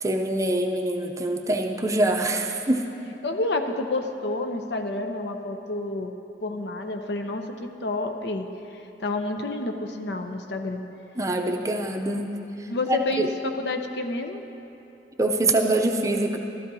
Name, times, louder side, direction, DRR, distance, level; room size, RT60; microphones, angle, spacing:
voice 1, 0.0-2.8 11.2-12.3 12.6-13.3 15.2-16.4, right 2 dB, 20° right, 3 dB, 0.5 m, -24 dB
voice 2, 3.2-6.1 6.4-10.8 12.7-14.4, left 2 dB, 75° left, 5 dB, 0.7 m, -29 dB
14.5 x 12.5 x 2.7 m, 2.9 s
head